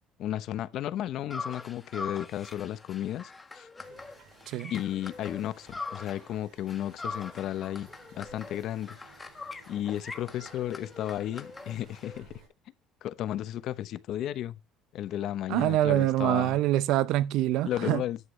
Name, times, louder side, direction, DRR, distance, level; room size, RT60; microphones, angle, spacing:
voice 1, 0.2-3.7 4.7-9.0 9.7-12.3 13.0-14.6 14.9-16.6 17.6-18.2, left 12 dB, 60° left, 0.8 m, -33 dB
sound 1, 1.3-6.4 6.7-12.2, left 3 dB, 15° left, 1.3 m, -42 dB
sound 2, 3.8-12.5, right 4 dB, 55° right, 6.7 m, -57 dB
voice 2, 15.5-18.0, right 14 dB, 70° right, 0.8 m, -25 dB
11.0 x 8.1 x 3.3 m
cardioid pair, 130°, 0 cm